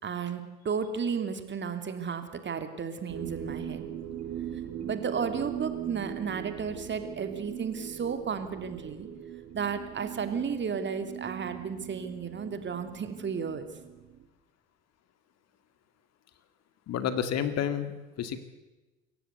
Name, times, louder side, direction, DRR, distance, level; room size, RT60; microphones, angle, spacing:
voice 1, 0.0-3.9 4.8-9.1 9.5-13.6, right 6 dB, 35° right, 8 dB, 2.8 m, -33 dB
sound 1, 3.1-14.3, right 10 dB, 55° right, 2.9 m, -40 dB
voice 2, 16.9-18.4, left 9 dB, 50° left, 10 dB, 2.1 m, -30 dB
26.5 x 14.5 x 8.3 m, 1.1 s
hypercardioid pair, 60°, 33 cm